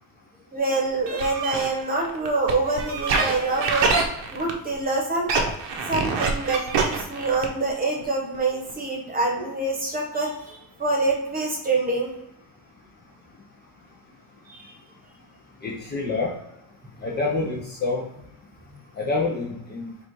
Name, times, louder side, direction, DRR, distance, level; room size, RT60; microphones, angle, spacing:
voice 1, 0.5-3.9 4.3-5.3 5.9-12.1 14.5-14.7, right 3 dB, 20° right, 0 dB, 1.0 m, -26 dB
sound 1, 1.1-4.8 5.2-7.7 8.0-8.1 8.3-8.4 8.7-8.8, right 4 dB, 90° right, 1.0 m, -25 dB
voice 2, 15.6-16.3 17.0-18.1 19.0-19.9, left 3 dB, 25° left, -3 dB, 0.5 m, -27 dB
4.8 x 2.5 x 4.5 m, 0.82 s
cardioid pair, 175°, 42 cm